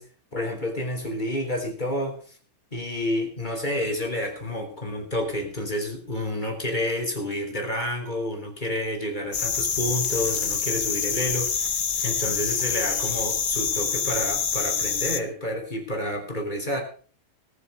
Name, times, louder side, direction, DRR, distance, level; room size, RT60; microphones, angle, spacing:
voice 1, 0.3-2.4 2.7-16.8, left 1 dB, 25° left, 3 dB, 3.5 m, -29 dB
sound 1, 9.3-15.2, left 6 dB, 45° left, 0.6 m, -26 dB
18.5 x 8.2 x 5.3 m, 0.41 s
omnidirectional pair, 1.9 m